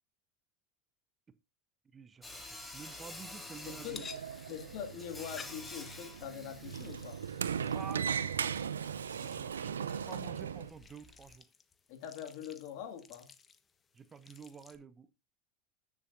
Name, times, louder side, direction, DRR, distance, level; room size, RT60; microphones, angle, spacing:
voice 1, 1.9-2.4 2.7-4.0 4.5-4.6 7.7-8.6 9.1-11.5 13.9-15.1, right 6 dB, 25° right, 0.8 m, -50 dB
Sawing, 2.2-11.3, left 2 dB, 10° left, 2.8 m, -51 dB
Sliding door, 3.6-10.7, right 7 dB, 85° right, 0.5 m, -38 dB
voice 2, 3.7-4.1 4.5-7.2 9.8-9.9 11.9-13.3, left 9 dB, 60° left, 2.2 m, -43 dB
sound 1, 3.9-14.8, left 6 dB, 25° left, 1.4 m, -55 dB
20.5 x 7.2 x 2.7 m
hypercardioid pair, 85°, 0 cm